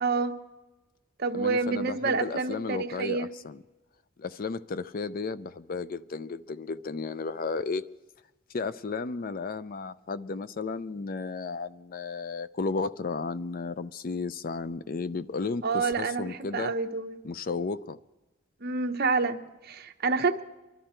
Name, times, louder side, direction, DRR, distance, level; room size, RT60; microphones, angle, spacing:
voice 1, 0.0-0.3 1.2-3.3 15.6-17.1 18.6-20.4, right 4 dB, 50° right, 6 dB, 0.9 m, -28 dB
voice 2, 1.3-3.6 4.2-7.8 8.5-16.7 17.2-18.0, left 4 dB, 45° left, 15 dB, 0.4 m, -33 dB
24.0 x 12.0 x 4.5 m, 1.1 s
head